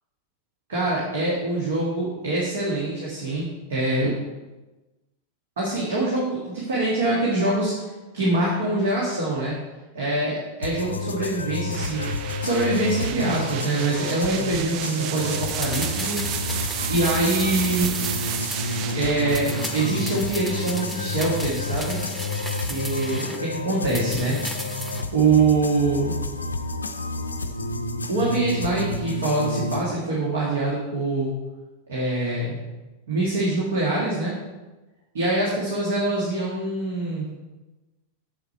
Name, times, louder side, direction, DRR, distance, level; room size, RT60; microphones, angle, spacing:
voice 1, 0.7-4.2 5.6-7.9 8.1-9.5 9.9-12.1 12.4-16.2 16.9-17.9 18.9-22.0 22.7-24.4 25.1-26.1 28.1-31.3 31.9-32.6 33.1-34.4 35.1-37.3, right 2 dB, 60° right, -5 dB, 1.9 m, -24 dB
sound 1, 10.6-29.8, left 2 dB, 75° left, 0.5 m, -30 dB
sound 2, 11.7-21.5, right 11 dB, 40° right, 0.4 m, -33 dB
sound 3, 15.2-19.0 19.3-23.4 23.8-25.1 25.4-25.5, equal, 5° right, 0.8 m, -34 dB
7.4 x 6.8 x 4.4 m, 1.1 s
figure-of-eight pair, 90°, 0 cm